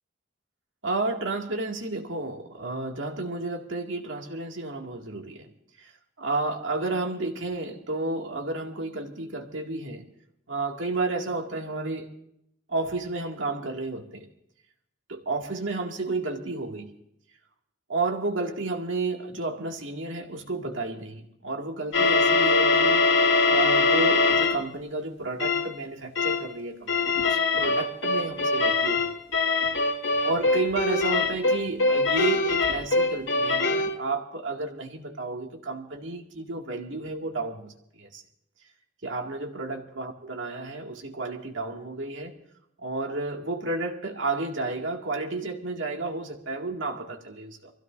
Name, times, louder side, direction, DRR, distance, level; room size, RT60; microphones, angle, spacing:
voice 1, 0.8-5.5 6.2-10.1 10.5-12.1 12.7-14.3 15.1-16.9 17.9-23.1 23.5-29.1 30.2-38.2 39.0-42.3 42.8-47.7, right 3 dB, 80° right, 2 dB, 2.2 m, -31 dB
sound 1, 21.9-24.7 25.4-25.7 26.2-26.5 26.9-34.0, left 3 dB, 85° left, 1.8 m, -23 dB
25.0 x 15.5 x 2.6 m, 0.75 s
head